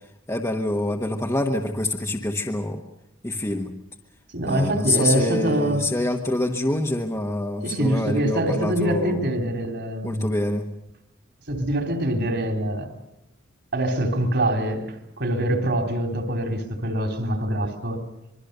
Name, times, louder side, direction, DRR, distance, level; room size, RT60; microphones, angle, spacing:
voice 1, 0.3-2.8 3.2-3.7 4.4-9.2 10.0-10.7, left 1 dB, 15° left, 1 dB, 1.3 m, -26 dB
voice 2, 4.3-5.9 7.6-10.3 11.5-12.9 13.7-18.1, right 1 dB, 55° right, 6 dB, 3.6 m, -24 dB
25.5 x 22.5 x 6.8 m, 0.85 s
head